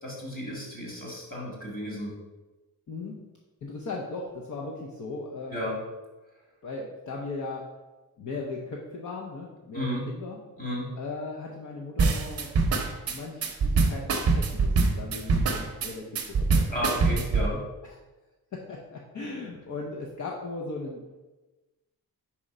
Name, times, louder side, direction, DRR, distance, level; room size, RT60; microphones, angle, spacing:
voice 1, 0.0-2.1 5.5-5.8 9.7-10.0 10.6-10.9 16.7-17.6, equal, 20° left, -4 dB, 1.9 m, -33 dB
voice 2, 2.9-3.2 3.6-5.7 6.6-7.6 8.2-10.4 11.0-12.5 13.0-16.8 17.8-18.0 18.5-21.0, left 3 dB, 50° left, -1 dB, 0.7 m, -37 dB
sound 1, 12.0-17.5, right 4 dB, 40° right, 0.7 m, -24 dB
4.9 x 4.3 x 5.3 m, 1.1 s
wide cardioid pair, 165°, 38 cm